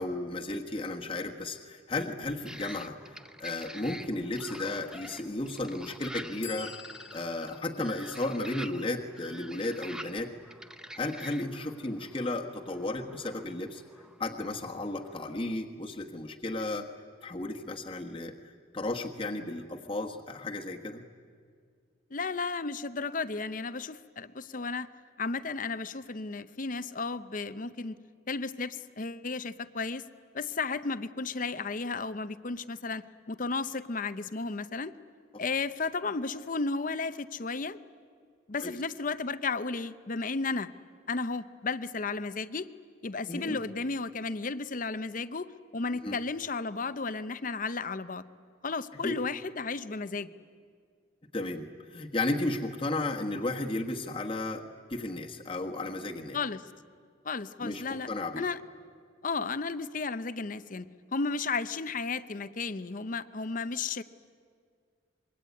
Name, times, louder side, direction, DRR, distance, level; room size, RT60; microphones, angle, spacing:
voice 1, 0.0-6.8 7.1-10.3 11.0-13.8 14.2-16.9 17.2-18.3 18.7-21.0 38.6-38.7 43.3-43.6 46.0-46.2 49.0-49.2 51.3-56.4 57.6-58.5, left 2 dB, 30° left, 1 dB, 1.4 m, -34 dB
sound 1, 2.4-15.5, right 1 dB, 5° right, 0.7 m, -47 dB
sound 2, 6.4-10.0, left 9 dB, 90° left, 1.7 m, -51 dB
voice 2, 22.1-24.9 25.2-28.0 28.3-30.0 30.3-34.9 35.4-37.8 38.5-40.7 41.1-42.7 43.0-48.2 48.6-50.3 56.3-56.6 57.2-58.1 58.4-58.6 59.2-64.0, left 4 dB, 45° left, 13 dB, 0.8 m, -33 dB
25.5 x 22.5 x 9.5 m, 2.1 s
head